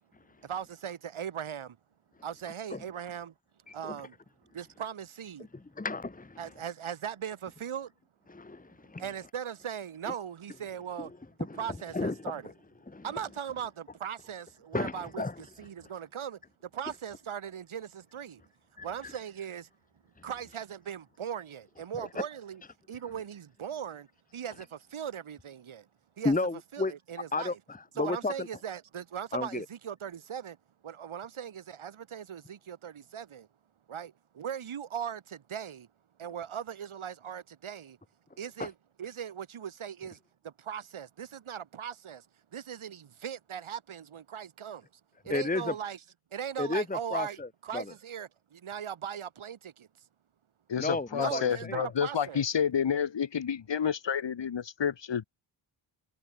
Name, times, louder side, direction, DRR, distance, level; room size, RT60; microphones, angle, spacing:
voice 1, 0.4-1.8 2.2-3.3 3.7-4.2 4.5-5.5 6.4-7.9 9.0-11.1 11.5-12.5 13.0-18.4 18.8-19.7 20.2-22.6 22.9-24.1 24.3-25.9 26.2-26.3 26.7-27.6 28.0-30.6 30.8-33.5 33.9-35.9 36.2-38.0 38.4-38.7 39.0-40.2 40.4-42.3 42.5-44.9 45.2-46.0 46.3-49.9 51.2-52.4, right 8 dB, 70° right, 3.8 m, -39 dB
voice 2, 5.8-6.4 8.3-9.0 11.0-11.1 11.4-11.6 11.9-12.3 12.9-13.0 14.7-15.4 18.8-19.1 22.1-22.2 26.2-26.9 27.3-28.5 29.3-29.6 38.6-38.7 45.3-45.7 46.6-47.8 50.8-51.8, left 3 dB, 15° left, 1.7 m, -33 dB
voice 3, 50.7-55.2, left 7 dB, 55° left, 2.6 m, -29 dB
cardioid pair, 80°, 50 cm